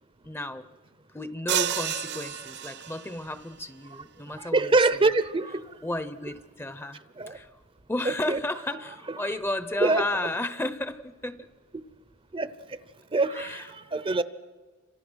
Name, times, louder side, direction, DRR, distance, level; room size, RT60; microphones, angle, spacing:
voice 1, 0.2-0.7 1.1-5.0 5.8-7.0 7.3-7.5 7.9-11.5 13.3-13.7, left 2 dB, 10° left, 12 dB, 0.7 m, -33 dB
sound 1, 1.5-3.3, right 9 dB, 55° right, 0.9 m, -30 dB
voice 2, 4.4-5.7 7.2-7.4 8.1-8.4 9.8-10.0 12.3-12.5 13.1-14.2, right 3 dB, 25° right, 14 dB, 0.7 m, -24 dB
30.0 x 26.0 x 6.3 m, 1.4 s
head